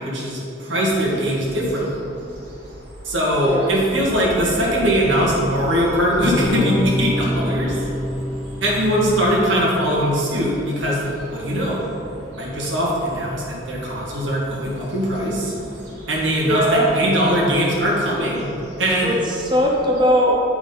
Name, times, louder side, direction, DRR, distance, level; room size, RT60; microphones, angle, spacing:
voice 1, 0.0-1.9 3.0-7.8 8.6-11.8 12.4-15.5 16.1-18.5 18.8-19.1, equal, 90° right, -4 dB, 1.9 m, -21 dB
sound 1, 0.9-20.1, equal, 70° right, 1.6 m, -43 dB
voice 2, 3.4-3.8 16.4-16.9 19.0-20.4, equal, 25° right, -2 dB, 0.7 m, -19 dB
sound 2, 3.9-9.3, equal, ahead, 1.7 m, -38 dB
sound 3, 6.3-11.2, left 1 dB, 40° left, 1.3 m, -27 dB
8.1 x 6.1 x 3.9 m, 2.8 s
head